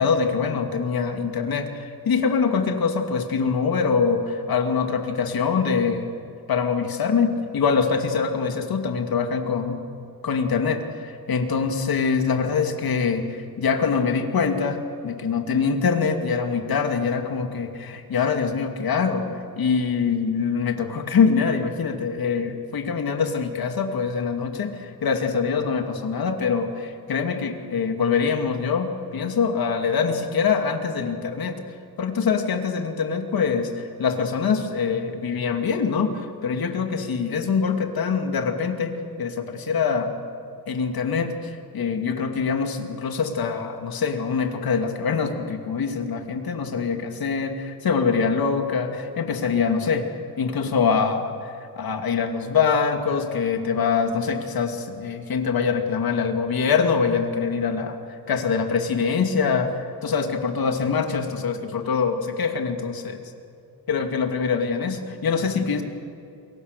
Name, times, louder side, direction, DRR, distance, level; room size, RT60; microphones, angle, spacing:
voice 1, 0.0-6.1 6.5-9.8 10.2-19.3 19.6-31.6 32.0-40.1 40.7-50.1 50.4-51.5 51.8-58.0 58.3-63.2 63.9-65.8, left 5 dB, 65° left, 5 dB, 2.6 m, -24 dB
28.5 x 23.0 x 6.8 m, 2.6 s
wide cardioid pair, 125°, 38 cm